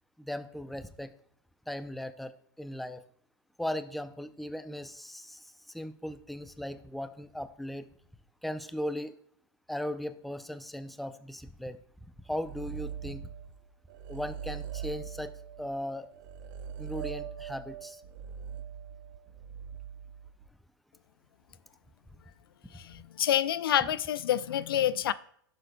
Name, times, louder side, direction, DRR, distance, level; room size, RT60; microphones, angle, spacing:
voice 1, 0.2-1.1 1.7-2.3 2.6-3.0 3.6-5.4 5.7-7.9 8.4-9.2 9.7-11.8 12.3-13.3 14.1-15.3 15.6-16.1 16.8-18.0, left 1 dB, ahead, 0.4 m, -37 dB
sound 1, 12.4-13.6 13.9-20.5, right 8 dB, 60° right, 0.7 m, -42 dB
voice 2, 22.7-25.1, left 11 dB, 85° left, 0.4 m, -28 dB
11.5 x 6.8 x 2.2 m
hypercardioid pair, 115°, 12 cm